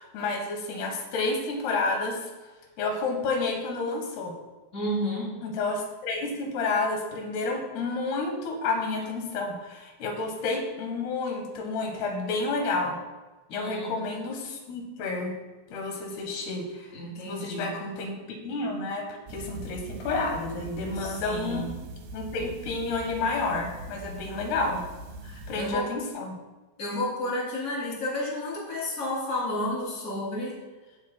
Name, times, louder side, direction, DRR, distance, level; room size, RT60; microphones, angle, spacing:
voice 1, 0.0-2.3 2.8-4.3 5.4-13.0 13.5-15.3 15.7-17.0 17.3-21.7 22.1-24.8 25.5-26.4, left 3 dB, 85° left, 2 dB, 3.3 m, -30 dB
voice 2, 4.7-5.3 13.5-14.0 16.9-17.7 20.9-21.7 25.2-25.9 26.8-30.5, left 1 dB, 25° left, -5 dB, 3.1 m, -31 dB
sound 1, 19.3-25.7, right 2 dB, 80° right, 2.9 m, -41 dB
17.0 x 7.9 x 2.2 m, 1.2 s
omnidirectional pair, 4.5 m